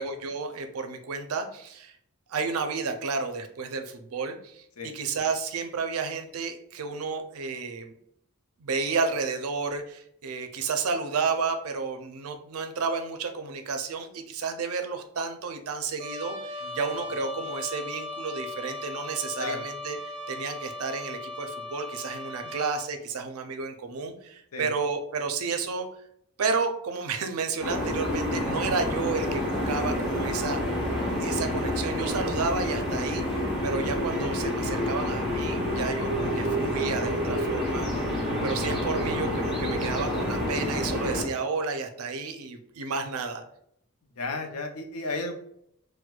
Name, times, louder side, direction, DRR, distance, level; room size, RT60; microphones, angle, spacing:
voice 1, 0.0-2.0 2.3-4.7 4.9-7.9 8.6-20.0 20.3-25.9 26.4-30.9 31.2-37.9 38.4-43.4, right 4 dB, 80° right, 7 dB, 0.5 m, -31 dB
Trumpet, 16.0-22.9, left 2 dB, 20° right, 0.7 m, -38 dB
sound 1, 27.6-41.2, left 1 dB, ahead, 1.1 m, -28 dB
voice 2, 44.2-45.3, left 2 dB, 90° left, 4 dB, 0.6 m, -33 dB
4.3 x 2.1 x 2.3 m, 0.73 s
head